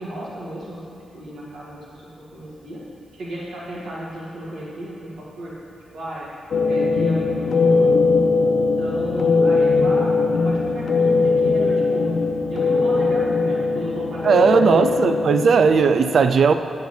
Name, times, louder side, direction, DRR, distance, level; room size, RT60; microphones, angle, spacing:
voice 1, 0.0-2.8 3.1-5.5 5.9-6.3 6.6-8.0 8.5-10.1 10.4-12.2 12.5-14.9, right 1 dB, 80° right, -6 dB, 1.8 m, -34 dB
sound 1, 6.5-15.9, left 4 dB, 65° left, 0.5 m, -20 dB
voice 2, 14.2-16.5, right 5 dB, 55° right, 9 dB, 0.3 m, -16 dB
8.2 x 6.6 x 3.2 m, 2.6 s
wide cardioid pair, 140°, 0 cm